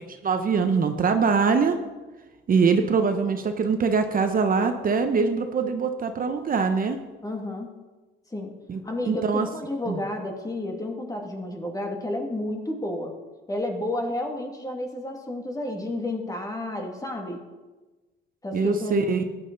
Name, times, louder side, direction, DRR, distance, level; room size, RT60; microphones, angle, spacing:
voice 1, 0.2-1.8 2.5-7.0 8.7-9.5 9.9-10.0 18.5-19.3, right 5 dB, 45° right, 7 dB, 0.9 m, -23 dB
voice 2, 7.2-7.7 8.3-8.5 8.8-13.1 13.5-17.4 18.4-19.0, left 1 dB, 15° left, 2 dB, 2.2 m, -31 dB
14.0 x 9.9 x 4.0 m, 1.2 s
cardioid pair, 90°, 20 cm